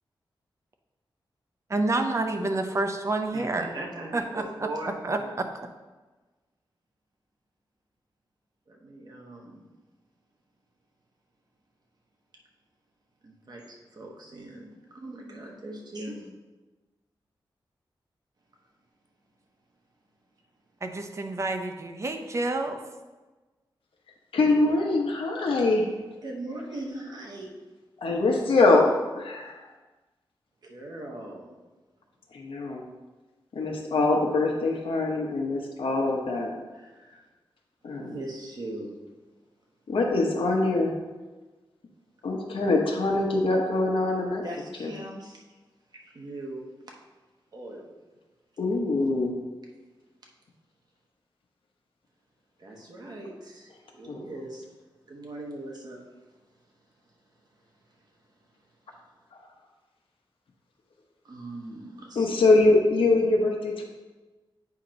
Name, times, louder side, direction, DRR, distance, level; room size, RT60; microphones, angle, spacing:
voice 1, 1.7-3.7 4.1-4.4 5.0-5.5 20.8-22.8, right 2 dB, 35° right, 5 dB, 0.6 m, -28 dB
voice 2, 3.3-5.3 8.7-9.6 13.2-16.3 26.2-27.5 30.6-31.6 36.7-37.2 37.9-39.0 44.4-45.4 46.0-46.7 47.5-47.9 52.6-54.7 55.1-56.1 58.0-58.1 61.2-62.5, right 1 dB, 50° right, -1 dB, 1.2 m, -40 dB
voice 3, 24.3-25.9 28.0-28.8 29.1-29.6 32.3-32.8 33.5-36.5 37.8-38.2 39.9-40.9 42.2-44.4 44.8-44.9 48.6-49.4 54.1-54.2 62.2-63.8, left 2 dB, 90° left, 0 dB, 1.0 m, -23 dB
8.3 x 2.9 x 5.1 m, 1.2 s
wide cardioid pair, 145°, 9 cm